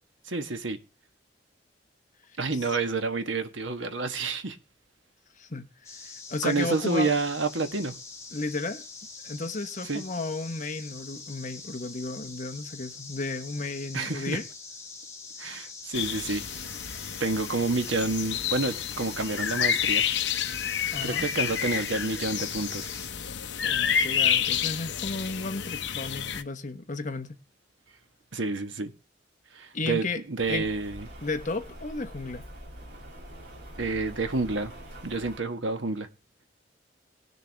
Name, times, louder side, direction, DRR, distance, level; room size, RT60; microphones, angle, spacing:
voice 1, 0.3-0.8 2.4-4.6 6.4-7.9 9.8-10.0 13.9-14.4 15.4-16.4 17.2-20.0 21.0-22.9 28.3-28.9 29.5-31.1 33.8-34.7 35.0-36.1, right 3 dB, 85° right, 1.4 m, -29 dB
sound 1, 5.8-23.1, left 4 dB, 15° left, 2.4 m, -44 dB
voice 2, 6.0-7.1 8.3-8.8 9.2-14.4 20.9-21.3 23.6-27.4 29.7-30.2 30.5-30.7 31.2-32.5, left 3 dB, 40° left, 1.1 m, -33 dB
sound 2, 15.9-26.4, left 8 dB, 70° left, 0.9 m, -29 dB
Rain, 30.4-35.4, equal, 60° right, 2.8 m, -44 dB
19.5 x 6.9 x 3.4 m
head